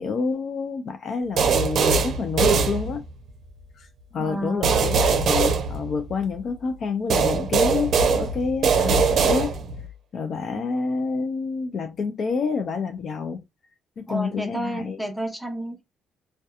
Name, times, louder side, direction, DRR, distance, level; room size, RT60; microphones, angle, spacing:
voice 1, 0.0-3.1 3.8-3.9 4.1-9.5 10.1-13.4 14.0-15.0, left 4 dB, 55° left, 0.4 m, -28 dB
sound 1, 1.4-3.3 4.6-6.4 7.1-9.9, right 5 dB, 65° right, 0.5 m, -22 dB
voice 2, 4.2-4.9 10.5-10.7 14.1-15.8, equal, ahead, 0.8 m, -31 dB
2.7 x 2.2 x 2.3 m
cardioid pair, 90°, 0 cm